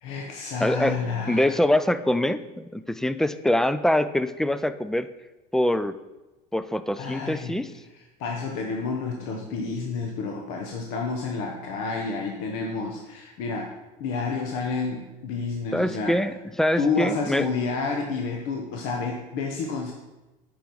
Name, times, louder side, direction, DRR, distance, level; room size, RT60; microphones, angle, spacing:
voice 1, 0.0-1.6 6.9-7.6 8.2-13.7 14.0-16.2 16.8-19.9, left 4 dB, 65° left, 1 dB, 1.0 m, -30 dB
voice 2, 0.6-1.0 1.3-5.1 5.5-5.9 6.5-7.7 15.7-17.5, left 1 dB, ahead, 13 dB, 0.3 m, -24 dB
8.9 x 4.8 x 5.4 m, 1.1 s
supercardioid pair, 100°, 21 cm